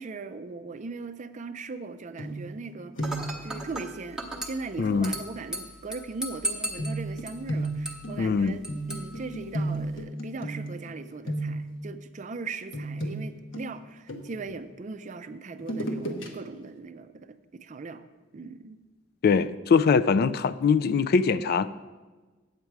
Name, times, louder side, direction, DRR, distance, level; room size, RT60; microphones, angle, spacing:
voice 1, 0.0-3.2 3.4-8.6 8.9-18.0 18.3-18.8, right 4 dB, 40° right, 0.4 m, -39 dB
sound 1, 2.2-2.7 3.0-3.4 4.9-5.0 6.8-10.9 11.2-11.8 12.7-14.6 15.6-16.3 16.7-16.8, right 1 dB, 70° left, 1.1 m, -33 dB
Dishes pots and pans / Glass, 3.0-10.0, equal, 5° right, 0.9 m, -38 dB
voice 2, 4.8-5.1 8.2-8.6 19.2-21.7, left 5 dB, 50° left, 0.3 m, -22 dB
8.8 x 8.1 x 4.7 m
head